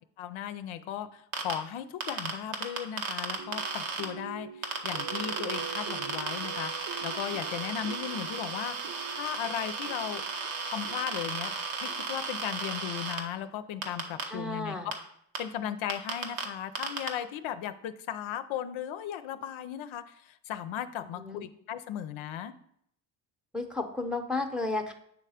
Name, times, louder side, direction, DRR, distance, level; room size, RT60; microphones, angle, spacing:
voice 1, 0.2-10.2 10.7-14.8 15.4-22.5, left 10 dB, 75° left, 11 dB, 0.6 m, -37 dB
sound 1, 1.3-1.5 2.0-4.0 4.6-13.2 13.8-14.2 14.9-15.0 15.3-15.4 15.9-16.4 16.8-17.1, right 5 dB, 85° right, 1.1 m, -34 dB
sound 2, 3.4-13.5, right 7 dB, 50° right, 0.9 m, -45 dB
voice 2, 14.3-14.9 21.2-21.4 23.5-24.9, left 2 dB, ahead, 4 dB, 0.7 m, -33 dB
8.1 x 3.3 x 4.9 m, 0.69 s
cardioid pair, 95°, 47 cm